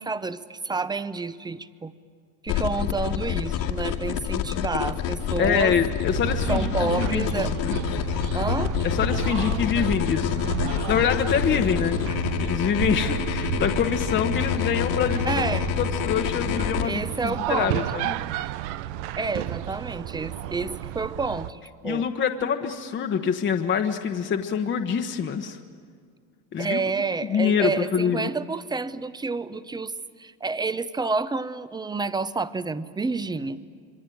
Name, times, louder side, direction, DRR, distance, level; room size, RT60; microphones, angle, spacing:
voice 1, 0.0-1.9 2.4-5.8 6.5-7.5 8.3-8.7 15.2-15.7 16.8-18.1 19.2-22.1 26.6-29.9 30.2-33.6, right 4 dB, 10° right, 15 dB, 0.7 m, -29 dB
sound 1, 2.5-16.8, left 9 dB, 75° left, 2.3 m, -27 dB
voice 2, 5.4-7.7 8.8-12.0 12.4-15.4 15.8-18.2 21.8-25.6 26.5-26.8 27.3-28.3, left 7 dB, 30° left, 4 dB, 1.1 m, -25 dB
sound 2, 6.1-21.5, right 13 dB, 85° right, 0.9 m, -32 dB
27.0 x 23.0 x 9.3 m, 2.1 s
cardioid pair, 135°, 39 cm